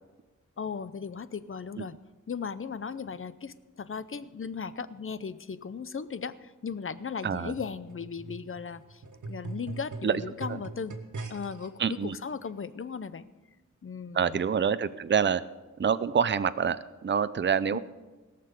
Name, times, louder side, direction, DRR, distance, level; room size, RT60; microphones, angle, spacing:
voice 1, 0.6-1.9 2.3-9.0 9.3-10.9 11.3-13.3 13.8-14.4 17.7-17.8, left 6 dB, 45° left, 15 dB, 0.6 m, -37 dB
voice 2, 7.2-7.5 10.0-10.2 10.5-10.6 11.8-12.2 14.1-15.4 15.8-17.8, right 7 dB, 40° right, 14 dB, 0.5 m, -26 dB
sound 1, 7.6-11.7 12.5-12.6, right 3 dB, 80° right, 1.5 m, -41 dB
17.5 x 6.7 x 6.9 m, 1.2 s
wide cardioid pair, 75°, 30 cm